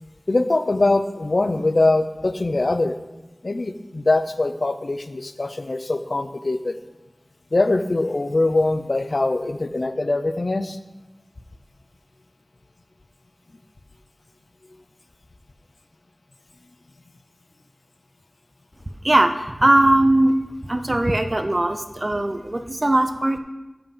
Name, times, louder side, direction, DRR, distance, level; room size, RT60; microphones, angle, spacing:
voice 1, 0.3-2.9 3.4-6.8 7.5-10.8, left 2 dB, 65° left, 10 dB, 0.5 m, -22 dB
voice 2, 19.0-20.3 20.7-23.4, right 1 dB, 40° right, 8 dB, 0.6 m, -19 dB
7.0 x 5.7 x 5.4 m, 1.1 s
wide cardioid pair, 60°, 0 cm